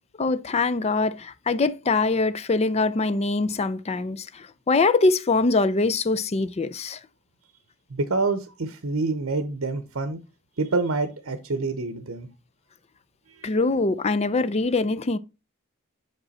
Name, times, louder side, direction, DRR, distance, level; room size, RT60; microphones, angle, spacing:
voice 1, 0.2-7.0 13.4-15.2, left 3 dB, 30° left, 0.4 m, -23 dB
voice 2, 7.9-10.2 10.6-12.3 13.4-13.5, right 3 dB, 70° right, 0.8 m, -27 dB
6.1 x 5.4 x 4.1 m
head